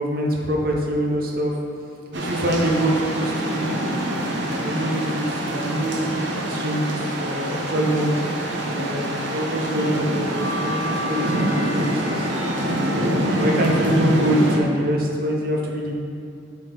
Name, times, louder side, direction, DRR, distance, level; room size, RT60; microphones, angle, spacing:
voice 1, 0.0-1.5 2.1-3.7 4.6-8.2 8.6-12.3 13.0-15.9, right 1 dB, 50° right, -1 dB, 0.8 m, -25 dB
sound 1, 2.1-14.6, right 1 dB, 85° right, 0.8 m, -25 dB
8.4 x 3.7 x 3.8 m, 2.4 s
head